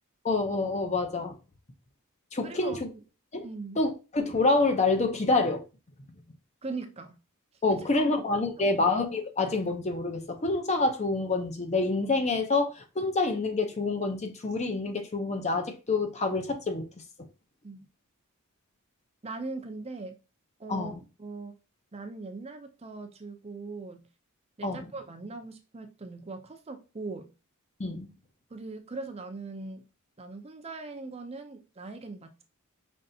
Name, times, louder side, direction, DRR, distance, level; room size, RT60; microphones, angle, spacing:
voice 1, 0.2-1.4 2.3-2.9 3.3-3.4 3.8-5.6 7.6-16.9 20.7-21.0 24.6-24.9 27.8-28.1, left 3 dB, 30° left, 0.7 m, -27 dB
voice 2, 2.4-2.8 3.4-3.8 6.6-7.2 8.0-8.1 8.6-8.8 17.6-17.8 19.2-20.2 20.6-20.9 21.2-21.5 21.9-24.1 24.6-27.3 28.5-29.9 30.2-32.4, right 3 dB, 30° right, 0.5 m, -40 dB
5.3 x 3.2 x 2.7 m
head